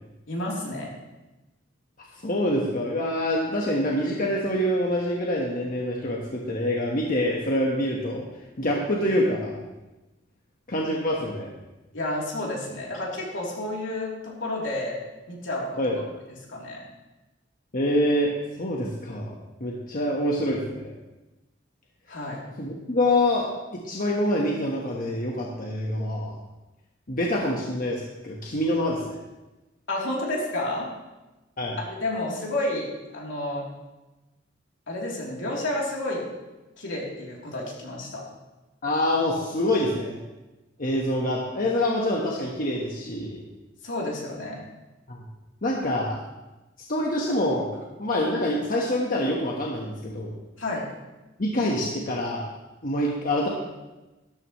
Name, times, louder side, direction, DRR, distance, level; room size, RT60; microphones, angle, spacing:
voice 1, 0.3-0.9 11.9-15.0 15.3-15.9 16.5-16.8 22.1-22.4 29.9-30.9 31.8-32.9 33.1-33.6 34.9-36.2 36.8-38.2 43.8-44.6 50.6-50.8, left 1 dB, 75° left, -3 dB, 3.2 m, -30 dB
voice 2, 2.2-8.2 8.6-9.5 10.7-11.5 15.8-16.0 17.7-18.3 18.6-19.3 19.6-20.8 22.6-26.3 27.1-29.2 31.6-31.8 38.8-40.2 40.8-43.4 45.1-45.2 45.6-46.2 46.9-50.3 51.4-52.4 52.8-53.5, left 1 dB, 45° left, -2 dB, 1.3 m, -26 dB
13.0 x 12.5 x 3.1 m, 1.1 s
head